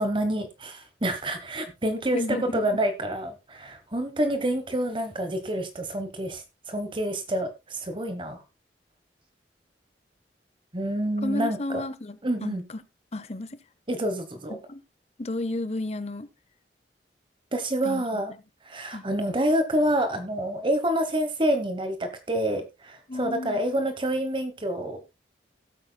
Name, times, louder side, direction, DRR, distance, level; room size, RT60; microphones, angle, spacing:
voice 1, 0.0-8.4 10.7-11.8 12.2-12.6 13.9-14.6 17.5-18.3 18.6-25.0, right 1 dB, 30° right, 1.2 m, -27 dB
voice 2, 2.1-2.7 11.2-12.8 13.1-13.6 14.5-14.8 15.2-16.3 17.8-18.2 18.9-19.0 23.1-23.6, left 1 dB, 35° left, 0.8 m, -33 dB
16.5 x 8.6 x 2.3 m
head